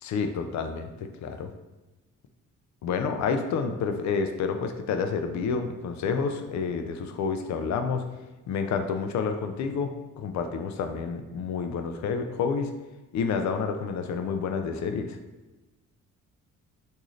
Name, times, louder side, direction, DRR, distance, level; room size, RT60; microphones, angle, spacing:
voice 1, 0.0-0.9 1.2-1.5 2.8-8.0 8.5-9.9 10.2-12.7 13.1-15.2, left 5 dB, 65° left, 7 dB, 0.5 m, -29 dB
3.7 x 2.7 x 3.1 m, 1.1 s
cardioid pair, 90°, 30 cm